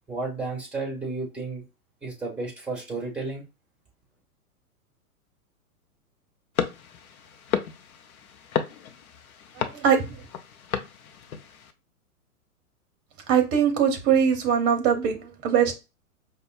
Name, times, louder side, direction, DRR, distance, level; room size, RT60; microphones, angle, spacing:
voice 1, 0.1-1.6 2.0-3.4, right 3 dB, ahead, -1 dB, 1.6 m, -32 dB
sound 1, 6.6-11.7, left 7 dB, 65° left, 0.7 m, -33 dB
voice 2, 9.6-10.2 13.3-15.7, right 7 dB, 30° right, 5 dB, 1.0 m, -22 dB
5.1 x 2.3 x 2.6 m, 0.27 s
hypercardioid pair, 110°, 45 cm